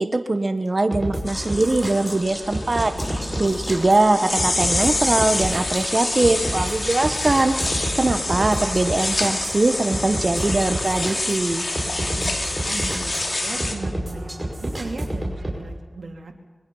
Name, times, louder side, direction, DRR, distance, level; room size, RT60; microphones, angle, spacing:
voice 1, 0.0-11.7, right 2 dB, 50° right, 8 dB, 1.2 m, -22 dB
sound 1, 0.9-15.6, right 1 dB, 25° right, 5.5 m, -30 dB
sound 2, 1.3-13.7, left 2 dB, 55° left, 2.9 m, -27 dB
voice 2, 3.0-3.5 11.8-14.3 14.6-16.3, right 3 dB, 85° right, 2 dB, 2.5 m, -37 dB
25.0 x 22.0 x 5.6 m, 1.3 s
cardioid pair, 40°, 0 cm